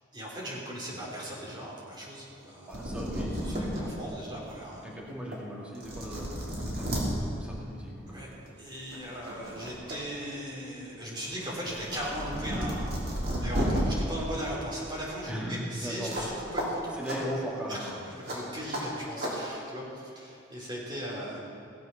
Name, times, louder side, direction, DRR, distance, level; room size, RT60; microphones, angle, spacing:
voice 1, 0.1-2.9 3.4-4.9 8.1-8.3 8.6-17.2 17.7-17.9 18.3-21.4, equal, 25° right, -5 dB, 3.5 m, -38 dB
sound 1, 2.4-2.5 2.7-3.8 4.4-4.5 5.3-5.4 5.7-7.0 8.3-8.5 8.9-10.0 10.3-13.8 16.1-16.3 16.6-16.7 17.0-17.2 18.3-18.4 18.7-18.8 19.2-19.3, equal, 55° right, 3.2 m, -33 dB
voice 2, 2.7-3.6 4.8-8.3 15.3-16.3 16.9-18.0, equal, 5° right, -5 dB, 2.2 m, -38 dB
17.0 x 7.9 x 5.9 m, 2.7 s
head